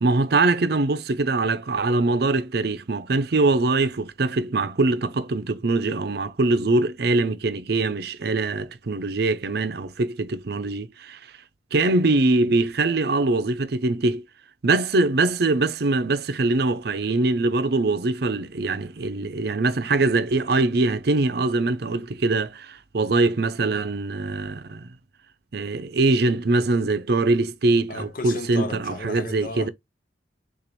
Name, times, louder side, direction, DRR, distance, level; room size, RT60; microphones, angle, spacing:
voice 1, 0.0-11.2 11.7-14.2 14.6-24.9 25.5-29.7, right 3 dB, 60° right, 0.6 m, -23 dB
voice 2, 27.9-29.7, left 2 dB, 50° left, 0.7 m, -34 dB
6.8 x 2.5 x 3.0 m
head